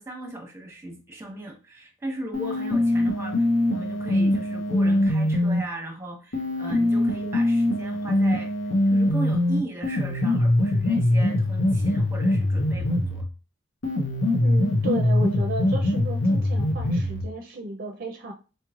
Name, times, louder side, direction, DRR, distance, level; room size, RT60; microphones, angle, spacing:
voice 1, 0.0-8.5 8.9-13.2, right 1 dB, 15° right, 2 dB, 1.0 m, -37 dB
sound 1, 2.3-5.6 6.3-13.3 13.8-17.3, left 1 dB, 85° left, 0.8 m, -23 dB
voice 2, 14.4-18.3, right 2 dB, 50° right, 4 dB, 0.5 m, -33 dB
4.2 x 3.1 x 2.4 m, 0.33 s
head